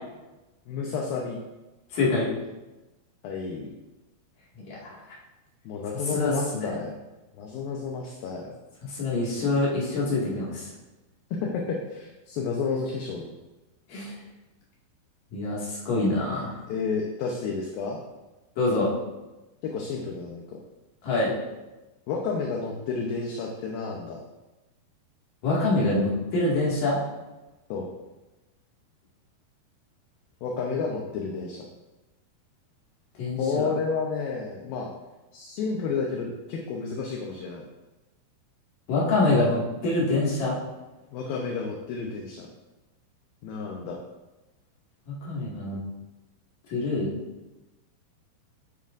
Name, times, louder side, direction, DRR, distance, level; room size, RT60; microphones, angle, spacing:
voice 1, 0.7-1.4 3.2-3.7 5.7-6.9 7.4-8.5 11.4-13.3 16.7-18.0 19.6-20.6 22.1-24.2 27.7-27.9 30.4-31.7 33.4-34.9 35.3-37.6 41.1-42.5 43.4-44.0, left 5 dB, 75° left, 0 dB, 2.4 m, -31 dB
voice 2, 1.9-2.3 4.7-5.0 6.1-6.7 8.9-10.7 13.9-14.1 15.3-16.6 18.6-18.9 21.0-21.3 25.4-27.0 33.2-33.7 38.9-40.6 45.1-45.8 46.7-47.1, left 2 dB, 55° left, -6 dB, 3.5 m, -25 dB
12.0 x 9.0 x 2.6 m, 1.1 s
omnidirectional pair, 4.8 m